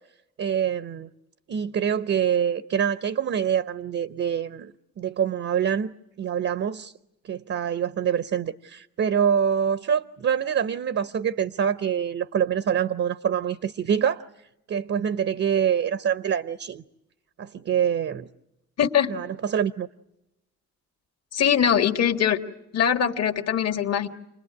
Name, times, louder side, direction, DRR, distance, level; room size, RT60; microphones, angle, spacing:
voice 1, 0.4-1.1 1.5-6.9 7.2-14.2 14.7-16.8 17.4-18.3 19.1-19.9, right 8 dB, 50° right, 0.9 m, -25 dB
voice 2, 18.8-19.1 21.3-22.4 22.7-24.1, left 8 dB, 55° left, 1.8 m, -22 dB
29.0 x 20.5 x 9.6 m
cardioid pair, 90°, 30 cm